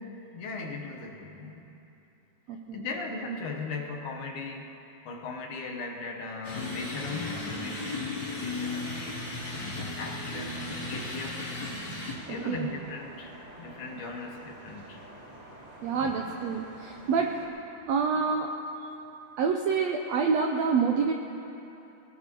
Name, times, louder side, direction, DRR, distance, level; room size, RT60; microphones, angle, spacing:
voice 1, 0.3-1.7 2.7-4.8 5.1-8.9 9.5-11.6 12.3-15.0 15.9-16.2, left 3 dB, 70° left, 1 dB, 2.5 m, -38 dB
voice 2, 2.5-2.9 10.3-10.5 12.4-12.7 15.8-17.3 17.9-18.5 19.4-21.1, right 5 dB, 85° right, 2 dB, 1.5 m, -27 dB
sound 1, 6.4-12.1, left 2 dB, 40° left, 3.0 m, -35 dB
sound 2, 12.1-17.5, right 1 dB, 30° right, 2.6 m, -48 dB
22.0 x 19.0 x 3.0 m, 2.9 s
omnidirectional pair, 3.9 m